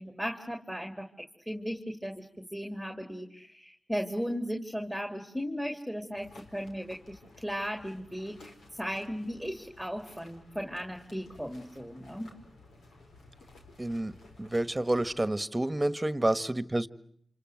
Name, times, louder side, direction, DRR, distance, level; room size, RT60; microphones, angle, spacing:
voice 1, 0.0-12.3, equal, ahead, 2.8 m, -36 dB
sound 1, 6.1-15.3, left 2 dB, 85° left, 4.8 m, -55 dB
voice 2, 13.8-16.9, right 1 dB, 20° right, 1.6 m, -29 dB
28.0 x 26.5 x 8.0 m
cardioid pair, 50°, 0 cm